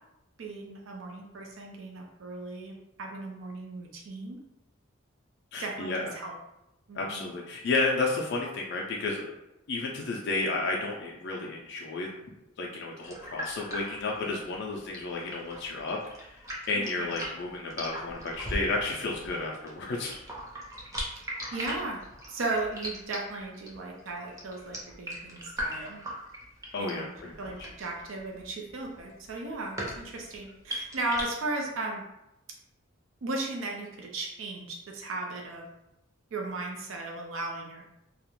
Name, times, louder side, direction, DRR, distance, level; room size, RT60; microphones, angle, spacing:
voice 1, 0.4-2.7 3.0-4.4 5.6-6.3 6.9-7.3 16.7-17.1 21.5-22.0 22.3-26.0 26.8-27.1 27.4-32.0 33.2-35.7 36.3-37.8, right 2 dB, 75° right, 0 dB, 0.4 m, -36 dB
voice 2, 5.5-6.1 6.9-9.4 9.7-12.1 12.6-20.1 26.7-27.5, left 3 dB, 55° left, -2 dB, 0.3 m, -32 dB
sound 1, 13.0-31.2, equal, 15° right, 0.5 m, -39 dB
2.4 x 2.1 x 2.9 m, 0.86 s
head